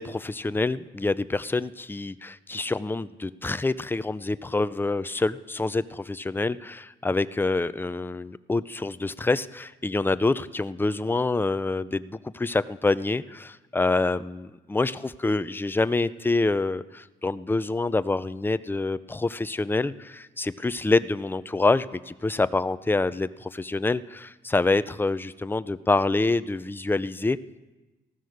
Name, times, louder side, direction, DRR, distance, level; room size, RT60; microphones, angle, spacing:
voice 1, 0.0-27.4, left 3 dB, 10° left, 14 dB, 0.5 m, -26 dB
16.0 x 13.5 x 6.6 m, 1.1 s
cardioid pair, 90°, 20 cm